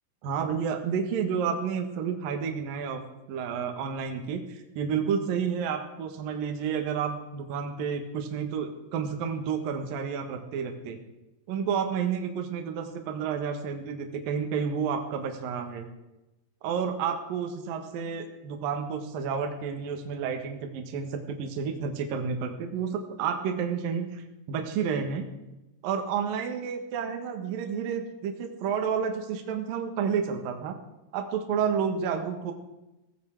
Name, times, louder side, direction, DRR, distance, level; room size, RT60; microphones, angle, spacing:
voice 1, 0.2-3.0 3.3-11.0 11.5-15.9 16.6-25.3 25.8-30.8 31.1-32.5, right 6 dB, 60° right, 4 dB, 2.7 m, -30 dB
17.0 x 15.0 x 4.8 m, 0.97 s
omnidirectional pair, 5.7 m